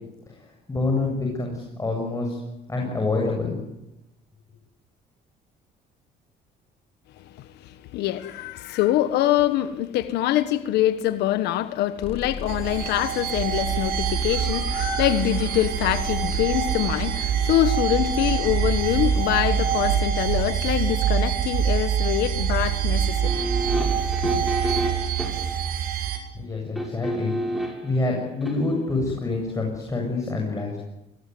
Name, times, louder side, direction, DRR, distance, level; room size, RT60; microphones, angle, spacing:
voice 1, 0.7-2.4 2.7-3.6 26.3-27.3 27.8-30.8, left 3 dB, 20° left, 7.5 m, -26 dB
voice 2, 7.2-23.3 23.8-23.9 24.2-24.4, left 13 dB, 85° left, 1.5 m, -24 dB
sound 1, 12.0-20.0, left 5 dB, 35° left, 5.2 m, -36 dB
sound 2, 12.5-26.2, right 8 dB, 65° right, 6.4 m, -25 dB
sound 3, 23.2-25.6 26.8-27.9 28.4-28.6, right 1 dB, ahead, 6.8 m, -29 dB
25.0 x 21.0 x 9.6 m
cardioid pair, 110°, 17 cm